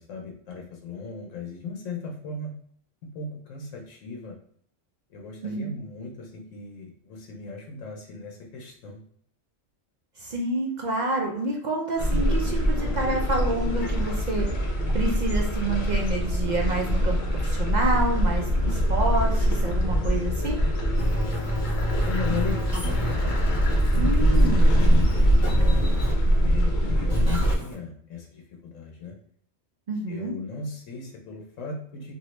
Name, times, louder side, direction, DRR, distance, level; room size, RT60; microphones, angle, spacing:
voice 1, 0.0-2.6 3.0-4.4 5.1-9.0 22.0-23.0 24.1-25.9 26.4-29.2 30.1-32.1, left 4 dB, 90° left, 1 dB, 1.0 m, -37 dB
voice 2, 5.4-5.7 10.2-14.5 14.9-20.6 24.0-24.8 29.9-30.3, right 2 dB, 65° right, 0 dB, 0.4 m, -28 dB
sound 1, 12.0-27.5, equal, 50° left, 0.6 m, -23 dB
sound 2, 21.0-26.1 27.1-27.7, equal, 15° left, 0.9 m, -32 dB
2.9 x 2.6 x 3.1 m, 0.63 s
omnidirectional pair, 1.3 m